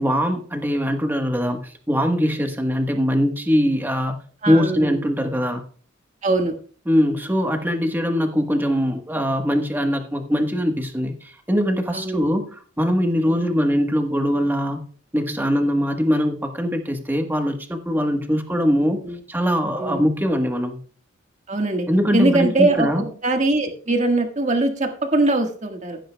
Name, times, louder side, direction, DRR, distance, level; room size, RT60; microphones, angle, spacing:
voice 1, 0.0-4.2 4.5-5.6 6.9-14.8 15.1-19.0 19.3-20.8 21.9-23.1, equal, 10° right, 5 dB, 1.2 m, -22 dB
voice 2, 4.4-5.0 6.2-6.5 11.9-12.3 13.3-13.4 19.0-19.2 19.8-20.0 21.5-21.9 22.1-22.9 23.2-26.0, right 2 dB, 35° right, 3 dB, 1.6 m, -21 dB
16.0 x 9.2 x 2.3 m, 0.43 s
head